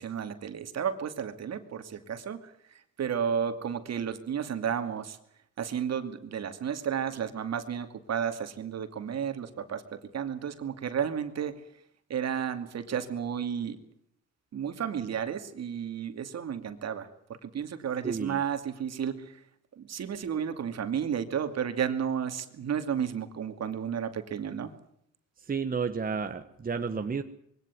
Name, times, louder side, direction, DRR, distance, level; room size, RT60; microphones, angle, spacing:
voice 1, 0.0-5.2 5.6-11.5 12.1-13.8 14.5-19.4 19.7-24.7, right 8 dB, 60° right, 8 dB, 2.6 m, -32 dB
voice 2, 18.0-18.4 25.5-27.2, right 5 dB, 30° right, 7 dB, 1.4 m, -31 dB
21.5 x 17.5 x 9.7 m, 0.71 s
cardioid pair, 90°, 30 cm